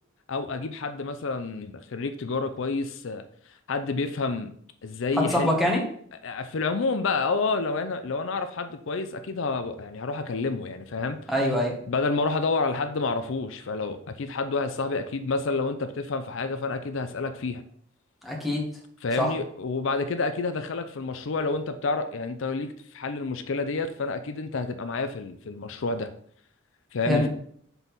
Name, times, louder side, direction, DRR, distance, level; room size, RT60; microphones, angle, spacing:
voice 1, 0.3-3.2 3.7-4.5 4.8-5.5 6.2-11.2 11.9-17.6 19.0-26.1 26.9-27.3, left 3 dB, 65° left, 9 dB, 0.5 m, -29 dB
voice 2, 5.2-5.8 11.3-11.8 18.2-18.6 19.2-19.3 27.1-27.3, left 1 dB, ahead, -1 dB, 1.5 m, -24 dB
5.4 x 4.1 x 5.9 m, 0.63 s
head